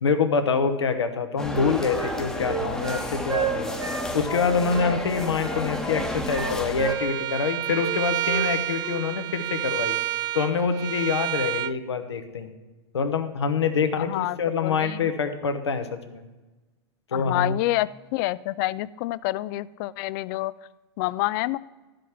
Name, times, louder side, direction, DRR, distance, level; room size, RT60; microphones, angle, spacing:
voice 1, 0.0-3.8 4.1-10.0 10.3-12.5 12.9-16.3 17.1-17.6, left 5 dB, 85° left, 8 dB, 1.0 m, -26 dB
sound 1, 1.4-6.9, left 1 dB, 5° left, 1.0 m, -32 dB
Wind instrument woodwind instrument, 1.5-5.0 5.4-7.5 7.7-7.9 8.2-8.5 8.8-9.0, right 6 dB, 80° right, 2.1 m, -31 dB
Bowed string instrument, 6.9-11.7, right 14 dB, 30° right, 0.3 m, -29 dB
voice 2, 14.0-15.1 17.1-20.5 21.0-21.6, left 17 dB, 50° left, 19 dB, 0.4 m, -28 dB
12.0 x 5.1 x 5.9 m, 1.2 s
hypercardioid pair, 105°, 14 cm